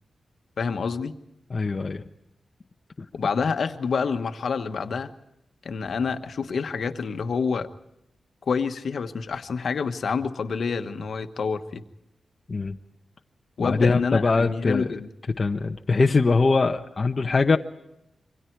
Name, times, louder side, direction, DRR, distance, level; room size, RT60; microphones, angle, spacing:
voice 1, 0.6-1.1 3.1-5.1 5.6-7.7 8.5-11.8 13.6-15.1, left 5 dB, 60° left, 8 dB, 1.3 m, -27 dB
voice 2, 1.5-2.0 3.0-3.1 12.5-12.8 13.6-15.0 15.4-17.6, left 3 dB, 35° left, 4 dB, 0.9 m, -22 dB
27.5 x 24.5 x 4.7 m, 0.84 s
wide cardioid pair, 165°, 0 cm